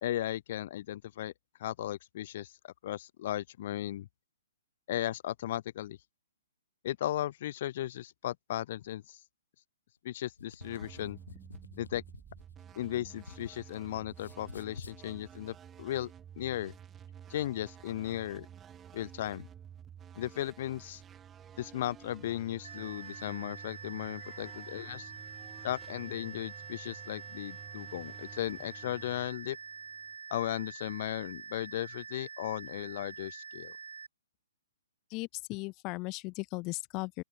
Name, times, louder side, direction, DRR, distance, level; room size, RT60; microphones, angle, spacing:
voice 1, 0.0-1.3 1.6-4.1 4.9-6.0 6.8-9.2 10.0-11.2 11.8-12.0 12.8-16.7 17.3-18.5 18.9-19.5 20.2-21.0 21.6-25.1 25.6-29.6 30.3-33.7, left 13 dB, 50° left, 2.1 m, -36 dB
sound 1, 10.4-13.8 14.1-15.0, left 4 dB, 85° left, 3.6 m, -49 dB
sound 2, 10.6-30.1, right 9 dB, 15° right, 3.3 m, -52 dB
sound 3, 22.6-34.1, right 6 dB, 75° right, 3.2 m, -46 dB
voice 2, 35.1-37.2, left 25 dB, 30° left, 0.6 m, -37 dB
open air
hypercardioid pair, 130°, 0 cm